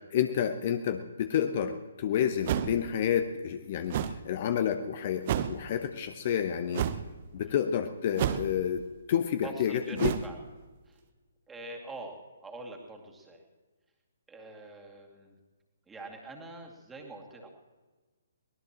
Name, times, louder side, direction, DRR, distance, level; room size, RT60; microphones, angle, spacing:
voice 1, 0.1-4.0 4.2-6.9 7.3-10.1, left 9 dB, 35° left, 9 dB, 0.8 m, -29 dB
sound 1, 2.4-2.9 3.9-4.2 5.2-5.6 6.7-7.1 8.2-8.6 9.9-10.3, right 10 dB, 35° right, 0.8 m, -30 dB
voice 2, 9.4-10.4 10.9-11.0 11.5-13.4 14.3-15.3 15.9-17.5, right 2 dB, 5° right, 0 dB, 2.3 m, -45 dB
23.0 x 18.5 x 3.0 m, 1.3 s
figure-of-eight pair, 130°, 0 cm